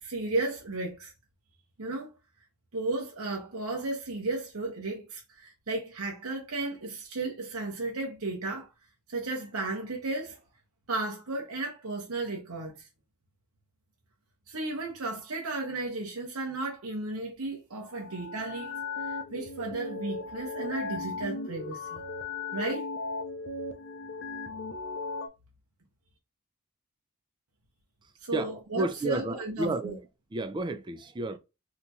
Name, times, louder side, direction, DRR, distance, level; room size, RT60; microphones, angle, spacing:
voice 1, 0.0-1.1 1.8-2.1 2.7-8.7 9.1-10.4 10.9-12.9 14.5-22.0 22.5-22.9 28.2-30.0, right 2 dB, 75° right, 0.9 m, -34 dB
sound 1, 17.9-25.3, left 3 dB, 55° left, 0.6 m, -37 dB
voice 2, 28.3-30.0 30.3-31.4, right 2 dB, 20° right, 0.4 m, -31 dB
4.1 x 2.9 x 2.3 m
head